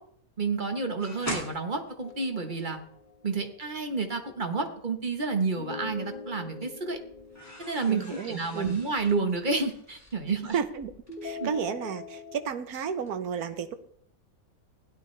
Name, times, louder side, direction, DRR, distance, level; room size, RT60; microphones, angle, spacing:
voice 1, 0.4-2.8 3.2-7.0 7.6-10.6 11.4-11.5, right 4 dB, 35° right, 5 dB, 1.3 m, -30 dB
sound 1, 1.0-3.1 5.3-6.1 6.5-12.5 12.8-13.1, left 1 dB, 10° left, 2.1 m, -43 dB
sound 2, 2.0-3.6 5.6-8.7 11.1-12.5, left 4 dB, 40° left, 1.1 m, -43 dB
voice 2, 7.9-8.8 10.3-10.9 11.2-13.7, right 7 dB, 90° right, 10 dB, 1.5 m, -32 dB
16.5 x 11.5 x 3.3 m, 0.62 s
omnidirectional pair, 1.5 m